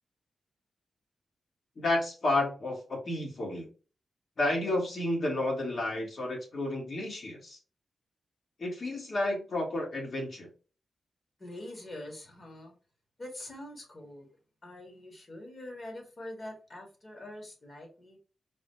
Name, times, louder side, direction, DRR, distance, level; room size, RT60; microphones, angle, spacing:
voice 1, 1.8-3.7 4.4-7.6 8.6-10.5, left 2 dB, 55° left, 0 dB, 1.5 m, -31 dB
voice 2, 11.4-12.8 13.2-14.3 14.6-18.2, left 1 dB, 40° left, 1 dB, 1.5 m, -44 dB
4.0 x 2.1 x 3.0 m, 0.35 s
wide cardioid pair, 95°, 0 cm